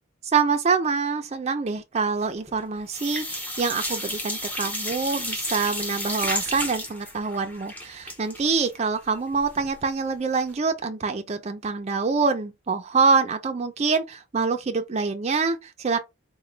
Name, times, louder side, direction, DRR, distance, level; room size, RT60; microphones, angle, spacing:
voice 1, 0.3-16.0, right 4 dB, 30° right, 0.4 m, -25 dB
sound 1, 2.2-2.6 2.9-9.7 10.1-10.2 10.5-10.6, left 1 dB, 10° left, 0.7 m, -32 dB
3.8 x 2.2 x 3.2 m
head